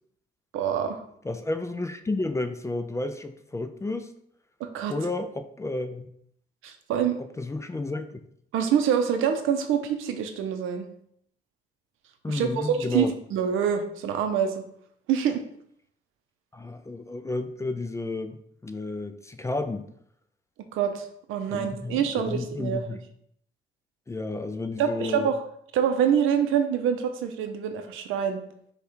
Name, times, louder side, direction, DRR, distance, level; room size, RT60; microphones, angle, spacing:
voice 1, 0.5-1.0 4.6-4.9 6.6-7.2 8.5-10.9 12.3-14.6 15.1-15.4 20.7-23.0 24.8-25.4 25.7-28.4, right 8 dB, 90° right, 6 dB, 0.6 m, -26 dB
voice 2, 1.2-4.1 4.9-6.1 7.2-8.1 12.2-13.1 16.5-19.9 21.5-23.0 24.1-25.3, left 2 dB, 15° left, 9 dB, 0.4 m, -32 dB
4.9 x 2.4 x 4.3 m, 0.69 s
cardioid pair, 90°, 20 cm